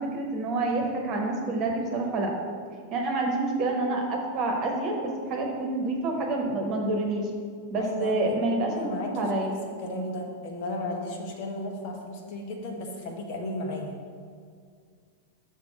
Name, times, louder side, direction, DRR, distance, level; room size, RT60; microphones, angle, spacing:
voice 1, 0.0-2.3 2.9-7.3 7.7-9.8, right 2 dB, 40° right, 1 dB, 1.1 m, -28 dB
voice 2, 7.8-8.4 8.6-9.3 9.8-13.9, left 1 dB, 50° left, 2 dB, 1.0 m, -34 dB
6.4 x 3.6 x 5.9 m, 2.1 s
figure-of-eight pair, 90°, 0 cm